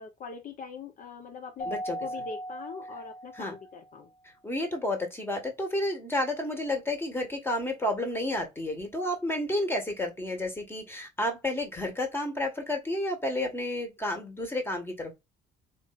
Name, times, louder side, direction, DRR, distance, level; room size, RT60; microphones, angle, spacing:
voice 1, 0.0-4.1, left 5 dB, 50° left, 0.9 m, -42 dB
Keyboard (musical), 1.6-3.9, equal, 35° left, 1.2 m, -38 dB
voice 2, 1.6-2.0 3.3-3.5 4.4-15.1, left 1 dB, 15° left, 1.6 m, -31 dB
4.4 x 3.0 x 2.5 m
cardioid pair, 110°, 17 cm